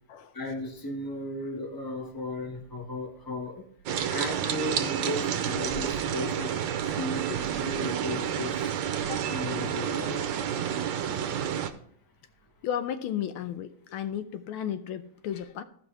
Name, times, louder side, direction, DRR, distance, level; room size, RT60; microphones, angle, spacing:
voice 1, 0.3-3.6 4.1-8.7 9.3-10.3, left 2 dB, 15° left, 1 dB, 1.0 m, -36 dB
sound 1, 3.9-11.7, right 9 dB, 70° right, 1.3 m, -30 dB
voice 2, 12.6-15.6, left 9 dB, 80° left, 10 dB, 1.5 m, -34 dB
15.0 x 5.4 x 3.3 m, 0.63 s
omnidirectional pair, 2.3 m